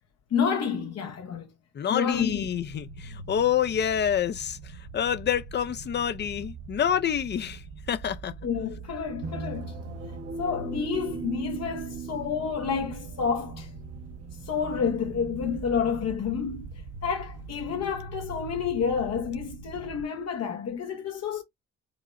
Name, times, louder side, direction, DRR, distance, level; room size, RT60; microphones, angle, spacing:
voice 1, 0.3-1.5 1.9-2.5 8.4-9.8 10.4-13.7 14.4-16.7 17.0-21.4, left 6 dB, 60° left, 0.8 m, -29 dB
voice 2, 1.7-4.6 4.9-7.6 7.9-8.3, left 9 dB, 35° left, 0.5 m, -27 dB
sound 1, 2.1-20.1, right 3 dB, 85° right, 0.9 m, -42 dB
sound 2, 9.2-18.0, right 4 dB, 55° right, 0.9 m, -41 dB
4.8 x 2.0 x 2.5 m
cardioid pair, 90°, 30 cm